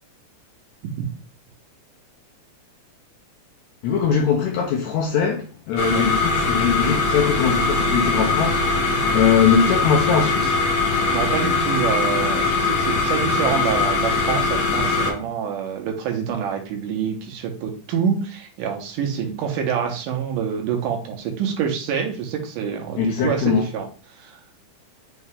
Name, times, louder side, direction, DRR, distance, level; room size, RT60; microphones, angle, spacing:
voice 1, 3.8-10.6 23.0-23.7, left 7 dB, 80° left, 1.6 m, -21 dB
sound 1, 5.8-15.1, left 3 dB, 65° left, 2.1 m, -21 dB
voice 2, 10.9-24.4, right 7 dB, 80° right, 2.4 m, -26 dB
5.8 x 2.8 x 3.3 m
omnidirectional pair, 3.7 m